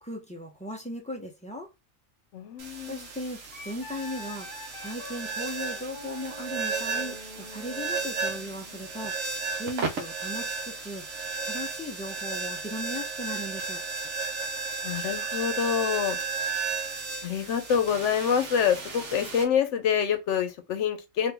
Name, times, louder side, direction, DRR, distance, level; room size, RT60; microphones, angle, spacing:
voice 1, 0.0-1.7 2.9-9.2 9.5-11.0 11.4-13.8, left 1 dB, 10° left, 0.3 m, -37 dB
voice 2, 2.3-3.1 14.8-16.2 17.2-21.3, left 8 dB, 70° left, 0.9 m, -26 dB
sound 1, 2.6-19.4, right 4 dB, 70° right, 1.0 m, -34 dB
Wind instrument woodwind instrument, 3.5-8.9, left 2 dB, 45° left, 0.8 m, -45 dB
2.9 x 2.6 x 3.3 m
omnidirectional pair, 1.3 m